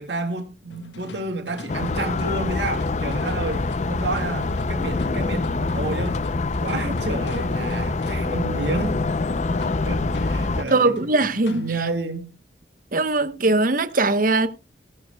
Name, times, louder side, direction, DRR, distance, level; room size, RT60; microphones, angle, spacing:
voice 1, 0.0-6.2 6.6-9.0 9.9-11.1 11.5-12.3, right 3 dB, 65° right, 2.2 m, -30 dB
sound 1, 0.7-11.9, left 2 dB, 75° left, 1.4 m, -42 dB
sound 2, 1.7-10.6, left 3 dB, 40° left, 0.6 m, -25 dB
voice 2, 10.7-11.7 12.9-14.5, right 2 dB, 50° right, 1.1 m, -20 dB
17.0 x 13.0 x 2.3 m
head